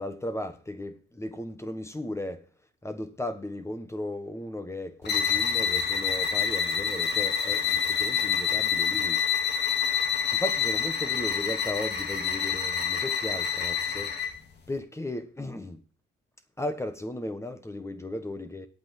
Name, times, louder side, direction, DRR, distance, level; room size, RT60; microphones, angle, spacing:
voice 1, 0.0-2.5 2.8-9.2 10.3-14.1 14.7-15.8 16.6-18.7, left 1 dB, 15° left, 1.4 m, -36 dB
sound 1, 5.0-14.4, left 7 dB, 60° left, 2.2 m, -27 dB
8.6 x 6.2 x 8.4 m
cardioid pair, 90°, 20 cm